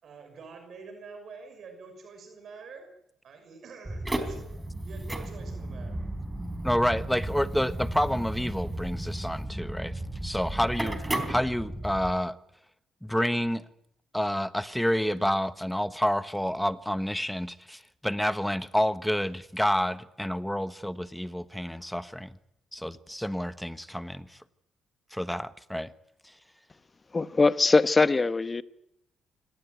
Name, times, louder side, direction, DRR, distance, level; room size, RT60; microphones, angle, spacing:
voice 1, 0.0-2.9 3.2-4.5 4.8-6.0, right 4 dB, 60° right, 6.2 m, -47 dB
sound 1, 3.8-12.1, right 1 dB, 10° right, 3.9 m, -34 dB
voice 2, 6.6-11.0 11.3-12.4 13.0-13.6 14.1-22.3 22.7-24.4 25.1-25.9, equal, 5° left, 1.3 m, -29 dB
voice 3, 27.1-28.6, left 3 dB, 25° left, 1.1 m, -22 dB
25.5 x 18.5 x 9.4 m
cardioid pair, 90°, 0 cm